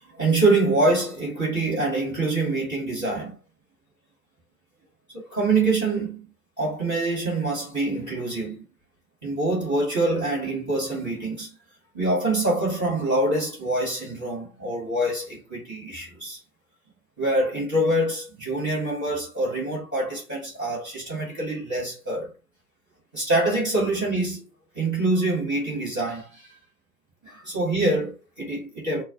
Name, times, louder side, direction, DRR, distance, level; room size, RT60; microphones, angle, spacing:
voice 1, 0.1-3.3 5.2-6.2 6.6-8.6 9.2-11.5 11.9-16.4 17.2-22.3 23.1-24.4 24.7-26.5 27.2-29.0, right 2 dB, 15° left, 1.0 m, -25 dB
2.2 x 2.0 x 2.7 m
figure-of-eight pair, 155°, 49 cm